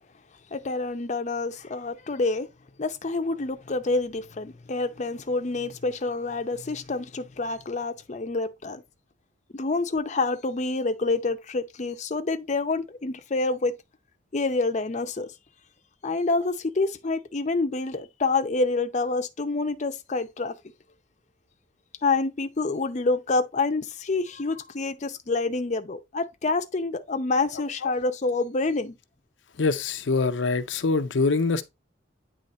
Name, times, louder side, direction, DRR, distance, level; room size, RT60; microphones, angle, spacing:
voice 1, 0.5-2.5 2.8-8.8 9.5-13.7 14.3-15.3 16.0-20.6 22.0-28.9, left 3 dB, 40° left, 0.6 m, -27 dB
voice 2, 29.6-31.6, left 4 dB, 80° left, 0.6 m, -24 dB
9.1 x 3.2 x 4.1 m
head